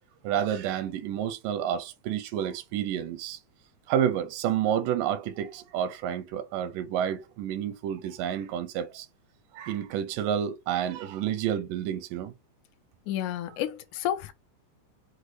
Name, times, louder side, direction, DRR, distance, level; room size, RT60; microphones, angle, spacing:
voice 1, 0.2-3.4 3.9-9.1 9.5-12.3, right 9 dB, 85° right, 2.2 m, -29 dB
voice 2, 13.1-14.3, left 11 dB, 75° left, 2.0 m, -31 dB
6.2 x 2.2 x 3.1 m
omnidirectional pair, 3.8 m